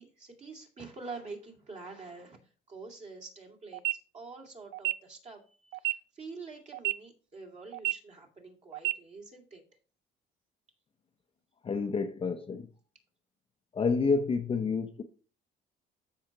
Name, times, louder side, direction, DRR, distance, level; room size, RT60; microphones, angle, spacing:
voice 1, 0.0-2.4 2.7-3.8 4.1-9.6, right 4 dB, 40° right, 2.5 m, -46 dB
sound 1, 3.7-3.9 4.7-4.9 5.7-5.9 6.7-6.9 7.7-7.9 8.7-8.9, right 21 dB, 75° right, 0.4 m, -29 dB
voice 2, 11.6-12.7 13.7-15.0, left 4 dB, 30° left, 0.7 m, -29 dB
14.0 x 5.6 x 2.9 m
cardioid pair, 130°, 18 cm